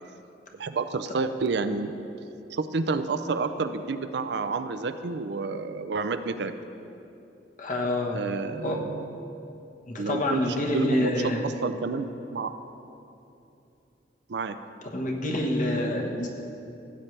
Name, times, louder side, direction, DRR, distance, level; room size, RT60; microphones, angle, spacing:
voice 1, 0.6-1.9 2.5-6.5 8.1-9.1 10.0-11.1 11.4-12.5 14.3-14.6, right 4 dB, 65° right, 10 dB, 0.5 m, -30 dB
voice 2, 7.6-8.2 8.6-8.8 9.9-11.4 14.9-16.3, left 1 dB, 45° left, 1 dB, 1.1 m, -27 dB
15.5 x 8.8 x 3.3 m, 2.8 s
head